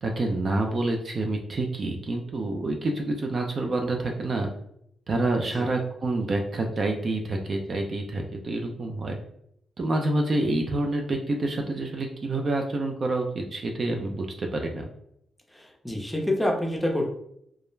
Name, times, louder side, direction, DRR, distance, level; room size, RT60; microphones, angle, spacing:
voice 1, 0.0-4.5 5.1-9.2 9.8-14.9, right 2 dB, 45° right, 2 dB, 0.4 m, -27 dB
voice 2, 15.5-17.1, left 1 dB, 5° left, 0 dB, 0.6 m, -27 dB
2.3 x 2.0 x 3.1 m, 0.73 s
cardioid pair, 90°, 0 cm